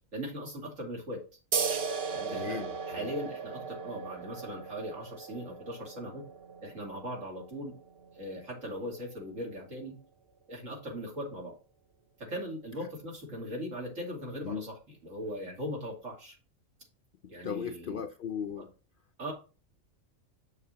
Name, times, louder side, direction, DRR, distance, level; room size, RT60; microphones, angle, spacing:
voice 1, 0.1-1.2 2.1-2.6 2.9-6.2 6.6-7.7 8.1-10.0 10.5-11.5 12.2-16.4 17.3-18.0 18.6-18.7 19.2-19.3, equal, 70° right, 3.0 m, -39 dB
sound 1, 1.5-8.6, right 5 dB, 50° right, 0.9 m, -37 dB
voice 2, 2.3-3.1 14.4-14.7 17.2-18.7, left 7 dB, 65° left, 0.5 m, -37 dB
7.1 x 6.8 x 2.8 m
omnidirectional pair, 1.4 m